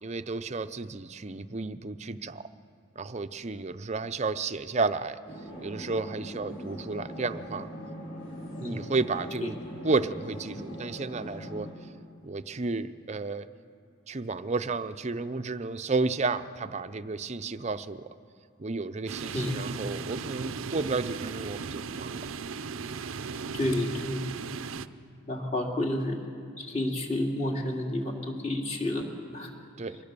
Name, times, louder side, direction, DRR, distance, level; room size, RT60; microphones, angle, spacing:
voice 1, 0.0-2.5 3.0-5.2 5.6-7.7 8.6-9.6 9.8-11.7 12.2-13.5 14.1-18.1 18.6-22.2 29.8-30.0, right 3 dB, 35° right, 11 dB, 0.6 m, -32 dB
sound 1, 5.2-11.7, equal, 65° left, 6.2 m, -41 dB
sound 2, 19.1-24.9, right 5 dB, 85° right, 0.6 m, -37 dB
voice 2, 23.5-24.2 25.3-26.2 26.6-29.0 29.3-29.5, left 1 dB, 35° left, 0 dB, 2.6 m, -30 dB
23.5 x 19.5 x 6.8 m, 2.5 s
head